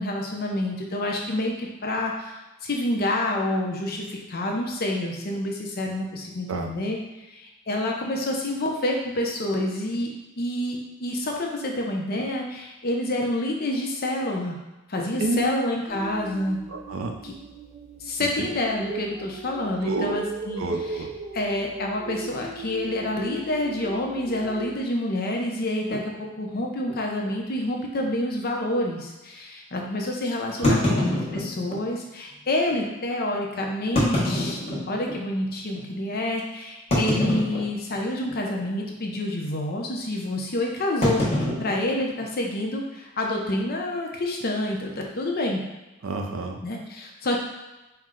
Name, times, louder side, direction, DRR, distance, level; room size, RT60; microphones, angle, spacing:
voice 1, 0.0-7.0 7.3-10.1 10.4-14.6 14.9-16.6 17.2-17.3 18.0-20.6 20.9-21.0 21.3-31.1 31.3-41.3 41.6-45.6 46.6-47.4, left 1 dB, 50° left, 0 dB, 0.7 m, -28 dB
sound 1, 15.9-24.8, right 3 dB, 35° right, 0.4 m, -38 dB
voice 2, 16.7-17.1 18.2-18.5 19.8-20.2 20.6-21.1 30.6-31.0 46.0-46.6, right 2 dB, 85° right, 3 dB, 0.5 m, -29 dB
sound 2, 25.9-26.1 26.8-26.9 27.2-27.3 27.9-28.1 30.6-31.8 32.7-32.8 33.8-35.2 35.7-35.8 36.9-38.0 38.3-38.6 38.9-39.2 41.0-42.6, left 1 dB, 30° left, 1.1 m, -26 dB
4.3 x 2.1 x 3.7 m, 1.0 s
head